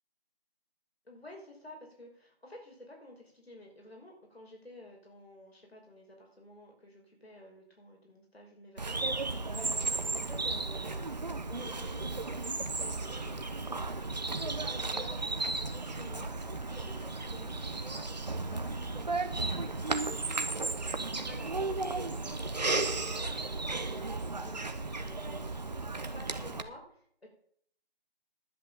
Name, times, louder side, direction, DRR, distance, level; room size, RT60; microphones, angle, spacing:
voice 1, 1.0-18.1 18.5-18.6 19.0-25.8 26.1-27.3, left 1 dB, 80° left, 0 dB, 5.6 m, -51 dB
Bird vocalization bird call bird song, 8.8-26.6, right 3 dB, 45° right, 1.0 m, -34 dB
11.0 x 8.5 x 7.1 m, 0.64 s
figure-of-eight pair, 170°, 30 cm